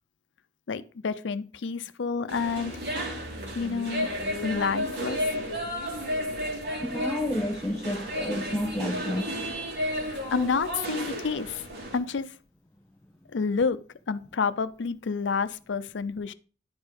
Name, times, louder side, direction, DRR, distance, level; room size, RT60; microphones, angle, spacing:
voice 1, 0.7-2.7 3.5-4.1 4.4-5.3 10.0-11.6 11.9-12.3 13.3-13.8 14.1-16.3, left 5 dB, 80° left, 0.5 m, -29 dB
sound 1, 2.3-12.0, equal, 60° right, 2.5 m, -32 dB
voice 2, 6.8-9.6, left 1 dB, 15° left, 1.5 m, -30 dB
10.5 x 4.5 x 5.1 m
head